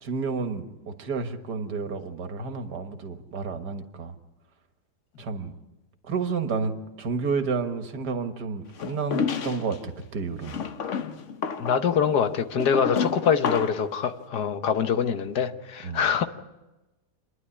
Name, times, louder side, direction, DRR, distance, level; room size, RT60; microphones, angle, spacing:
voice 1, 0.0-4.1 5.2-5.5 6.1-10.6 15.8-16.0, right 4 dB, 85° right, 7 dB, 2.0 m, -30 dB
sound 1, 8.8-9.8 10.4-13.9, left 6 dB, 55° left, 1.2 m, -30 dB
voice 2, 11.6-16.2, left 7 dB, 85° left, 8 dB, 1.7 m, -24 dB
27.0 x 11.0 x 9.8 m, 1.0 s
omnidirectional pair, 1.7 m